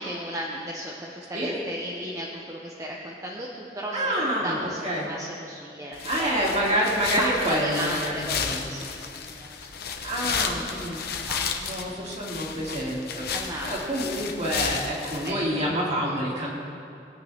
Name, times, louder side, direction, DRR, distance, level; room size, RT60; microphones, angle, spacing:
voice 1, 0.0-6.3 7.2-9.6 11.2-11.4 13.3-13.7 15.2-15.5, right 1 dB, 20° right, -3 dB, 0.9 m, -34 dB
voice 2, 3.9-5.1 6.0-8.7 10.0-11.0 11.6-16.5, equal, 40° right, -4 dB, 2.6 m, -27 dB
sound 1, 5.9-15.3, left 6 dB, 60° left, 0.9 m, -33 dB
20.5 x 8.8 x 3.5 m, 2.6 s
head